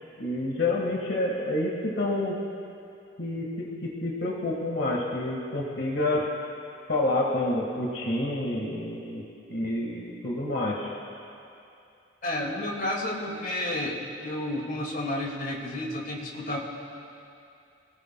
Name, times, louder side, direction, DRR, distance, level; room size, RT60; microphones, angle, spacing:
voice 1, 0.2-2.3 3.2-6.3 6.9-10.9, left 1 dB, 65° left, -3 dB, 1.8 m, -28 dB
voice 2, 12.2-16.6, left 1 dB, 45° left, -1 dB, 2.2 m, -31 dB
27.5 x 18.0 x 2.3 m, 2.6 s
head